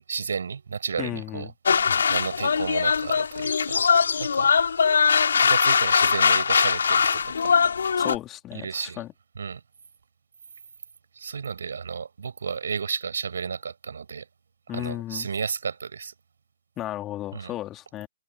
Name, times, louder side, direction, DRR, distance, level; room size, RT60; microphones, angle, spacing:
voice 1, 0.1-1.5 2.1-3.9 4.2-4.5 5.4-7.6 8.5-9.0 9.4-9.6 11.1-14.3 14.7-16.1 17.3-17.5, right 6 dB, 65° right, 7.4 m, -32 dB
voice 2, 1.0-1.5 8.0-9.1 14.7-15.3 16.8-18.1, left 14 dB, 20° left, 2.9 m, -34 dB
sound 1, 1.7-8.2, left 6 dB, 65° left, 3.0 m, -21 dB
figure-of-eight pair, 130°, 0 cm